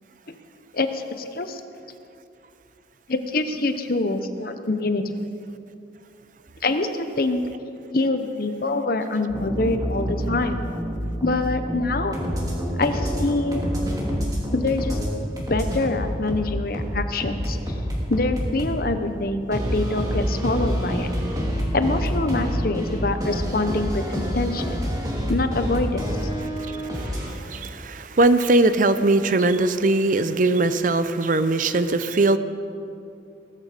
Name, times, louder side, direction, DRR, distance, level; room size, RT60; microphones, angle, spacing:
voice 1, 0.7-1.6 3.1-5.2 6.6-7.4 7.9-10.6 11.2-12.1 12.8-13.6 14.5-15.0 15.5-17.6 18.1-21.1 21.7-24.8 25.3-26.2, left 2 dB, 50° left, 8 dB, 0.9 m, -25 dB
sound 1, 9.3-15.1 15.4-18.8 19.5-27.3, equal, 20° right, 3.0 m, -27 dB
voice 2, 26.9-32.4, right 2 dB, 45° right, 11 dB, 0.6 m, -20 dB
18.5 x 13.5 x 5.1 m, 2.6 s
head